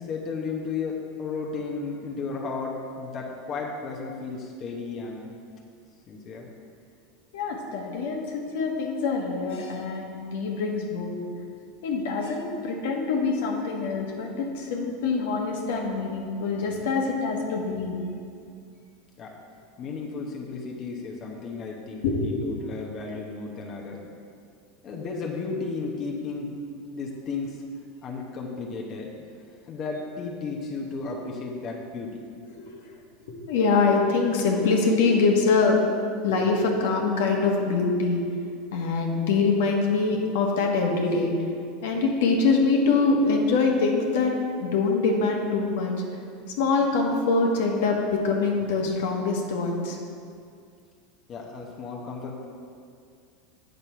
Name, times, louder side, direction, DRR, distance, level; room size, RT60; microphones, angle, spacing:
voice 1, 0.0-5.3 6.1-6.5 19.2-19.4 19.8-24.1 24.8-26.5 26.9-27.6 28.0-29.1 29.6-32.2 51.3-52.5, left 4 dB, 35° left, -1 dB, 1.0 m, -34 dB
voice 2, 7.3-11.2 11.8-18.0 22.0-22.4 32.6-32.9 33.5-35.8 36.2-38.2 38.7-41.3 41.8-44.3 44.6-45.9 46.6-50.0, left 4 dB, 75° left, 0 dB, 1.4 m, -24 dB
8.5 x 6.7 x 4.5 m, 2.3 s
supercardioid pair, 140°, 0 cm